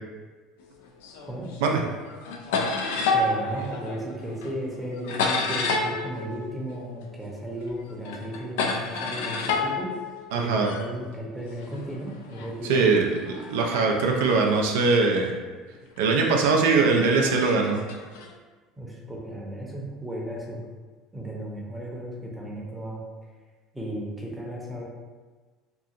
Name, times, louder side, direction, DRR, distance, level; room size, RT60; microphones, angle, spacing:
sound 1, 1.0-1.7 2.0-7.3 7.6-10.9 11.6-15.1 15.8-16.0 16.9-18.3, left 3 dB, 85° left, 0.3 m, -30 dB
voice 1, 3.1-9.9 10.3-13.0 18.8-20.6 21.1-23.0 23.7-24.8, equal, 10° right, -3 dB, 0.7 m, -35 dB
voice 2, 10.3-10.7 12.7-15.3 16.0-17.8, right 4 dB, 85° right, 1 dB, 0.3 m, -21 dB
2.8 x 2.4 x 2.4 m, 1.4 s
supercardioid pair, 95°, 0 cm